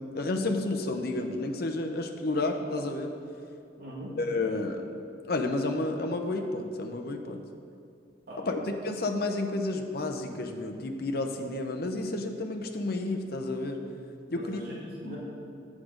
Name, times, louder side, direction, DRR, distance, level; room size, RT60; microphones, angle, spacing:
voice 1, 0.0-3.1 4.2-5.0 5.3-7.4 8.5-13.8 14.3-14.6 15.0-15.2, left 2 dB, 55° left, 4 dB, 0.7 m, -31 dB
voice 2, 3.8-4.1 8.3-8.6 14.3-15.2, equal, 55° right, -5 dB, 1.9 m, -41 dB
8.4 x 7.3 x 5.0 m, 2.5 s
head